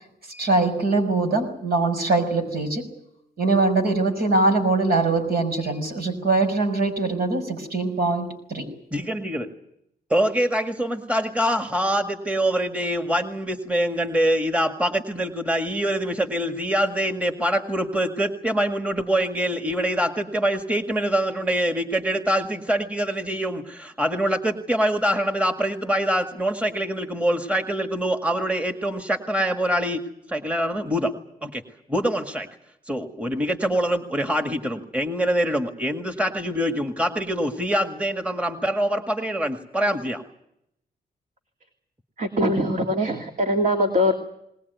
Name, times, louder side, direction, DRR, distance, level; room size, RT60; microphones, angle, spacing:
voice 1, 0.3-2.8 3.4-8.7, right 3 dB, 70° right, 6 dB, 5.8 m, -22 dB
voice 2, 8.9-9.5 10.1-30.0 30.3-31.1 31.4-31.6 31.9-32.5 32.9-40.2, right 1 dB, 10° right, 6 dB, 1.9 m, -24 dB
voice 3, 42.2-44.1, equal, 50° right, 3 dB, 2.5 m, -22 dB
20.5 x 20.0 x 9.4 m, 0.77 s
cardioid pair, 105°, 17 cm